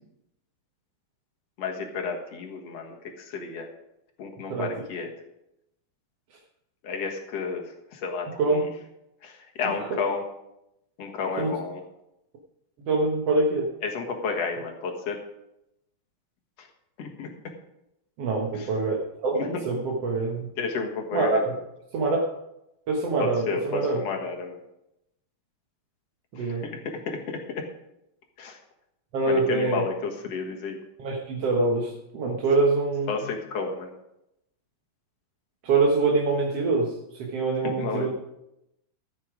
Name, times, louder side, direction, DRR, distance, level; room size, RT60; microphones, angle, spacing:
voice 1, 1.6-3.7 4.2-5.1 6.8-7.6 7.9-8.6 9.2-10.2 11.0-11.8 13.8-15.2 17.0-17.3 19.4-19.5 20.6-21.4 23.2-24.6 26.9-27.6 28.4-28.6 29.3-30.8 33.1-33.9 37.6-38.1, left 5 dB, 55° left, 2 dB, 2.1 m, -31 dB
voice 2, 9.6-10.0 11.4-11.5 12.9-13.7 18.2-20.5 21.1-21.6 21.9-22.2 22.9-24.0 26.3-26.6 29.1-29.8 31.0-33.3 35.6-38.1, right 3 dB, 60° right, -1 dB, 1.8 m, -25 dB
13.5 x 8.3 x 5.0 m, 0.84 s
omnidirectional pair, 4.2 m